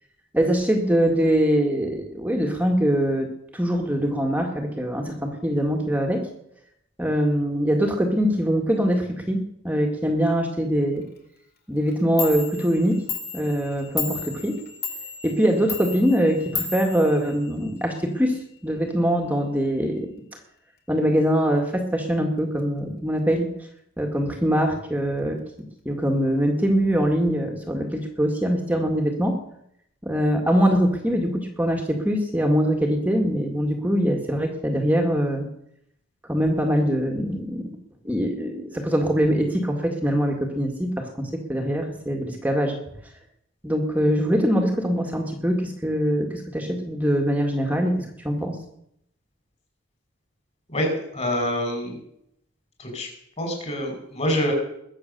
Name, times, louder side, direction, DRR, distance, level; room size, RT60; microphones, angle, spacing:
voice 1, 0.3-6.3 7.0-11.0 11.7-13.0 13.3-14.6 15.2-20.1 20.9-23.5 24.0-25.4 25.9-29.4 30.0-35.5 36.3-37.7 38.0-42.8 43.6-48.6, equal, 10° right, 2 dB, 1.8 m, -23 dB
Clock, 11.9-12.0 12.2-17.8, left 5 dB, 50° left, 2.6 m, -33 dB
voice 2, 50.7-52.0 52.8-53.1 53.4-54.5, equal, 35° left, 3 dB, 5.1 m, -26 dB
21.0 x 7.8 x 6.8 m, 0.74 s
head